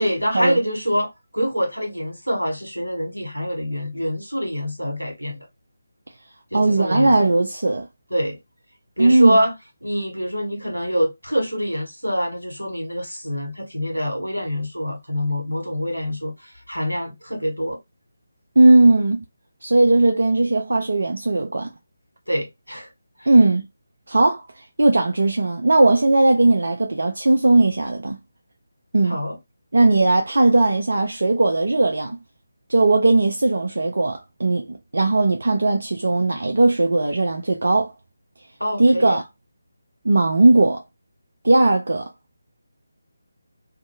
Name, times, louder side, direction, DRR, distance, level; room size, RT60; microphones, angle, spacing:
voice 1, 0.0-5.4 6.5-7.3 8.1-8.4 9.0-9.5 9.8-16.3 16.7-17.8 22.3-22.9 23.2-23.3 29.1-29.4 38.6-39.2, equal, 90° right, 1.4 m, -25 dB
voice 2, 6.5-7.9 9.0-9.4 18.6-19.2 19.6-21.7 23.3-23.6 24.1-24.4 24.8-28.2 28.9-29.2 29.7-32.2 32.7-37.9 38.8-39.2 40.0-40.8 41.4-42.1, right 2 dB, 60° right, 0.4 m, -17 dB
2.6 x 2.6 x 2.3 m
figure-of-eight pair, 155°, 0 cm